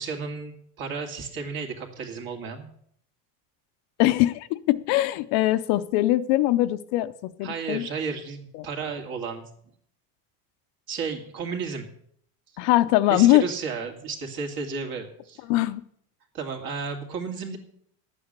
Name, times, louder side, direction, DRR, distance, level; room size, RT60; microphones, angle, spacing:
voice 1, 0.0-2.7 7.4-9.4 10.9-11.8 13.1-15.4 16.3-17.6, right 5 dB, 45° right, 4 dB, 2.5 m, -33 dB
voice 2, 4.0-7.9 12.6-13.5 15.5-15.8, left 16 dB, 55° left, 12 dB, 0.6 m, -22 dB
11.5 x 8.9 x 6.6 m, 0.67 s
cardioid pair, 155°, 47 cm